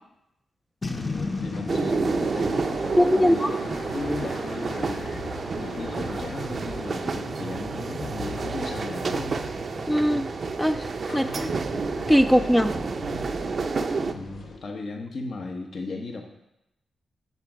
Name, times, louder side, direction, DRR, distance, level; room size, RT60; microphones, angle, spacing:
Boom, 0.8-4.1, left 3 dB, 30° left, 0.9 m, -34 dB
sound 1, 0.9-14.6, left 3 dB, 80° left, 1.3 m, -40 dB
voice 1, 1.1-5.1 5.5-9.4 11.1-11.6 14.1-16.2, left 3 dB, 65° left, 3 dB, 1.0 m, -36 dB
sound 2, 1.7-14.1, right 4 dB, 55° right, 0.5 m, -30 dB
voice 2, 3.0-3.5 9.9-10.3 10.6-10.8 11.1-11.5 12.1-12.7, equal, 5° left, 8 dB, 0.3 m, -20 dB
8.4 x 4.0 x 6.0 m, 0.87 s
cardioid pair, 60°, 0 cm